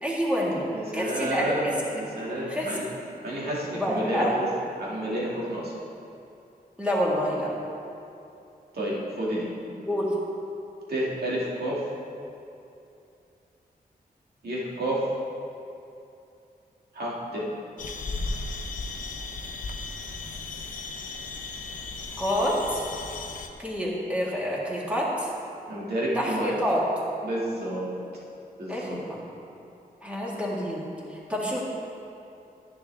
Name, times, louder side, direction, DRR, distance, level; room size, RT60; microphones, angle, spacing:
voice 1, 0.0-0.7 0.9-1.8 2.5-2.8 3.7-4.4 6.8-7.5 9.9-10.1 22.2-22.8 23.6-25.3 26.1-26.8 28.7-29.2 30.0-31.6, equal, 10° right, -5 dB, 1.8 m, -27 dB
voice 2, 0.7-2.9 3.2-4.5 4.8-5.7 8.7-9.5 10.9-11.8 14.4-15.0 16.9-17.4 25.7-26.5 27.2-27.9 28.6-29.0, right 1 dB, 85° right, -6 dB, 2.3 m, -30 dB
sound 1, 17.8-23.5, left 3 dB, 55° left, 0.8 m, -35 dB
10.5 x 10.5 x 3.5 m, 2.7 s
wide cardioid pair, 140°, 16 cm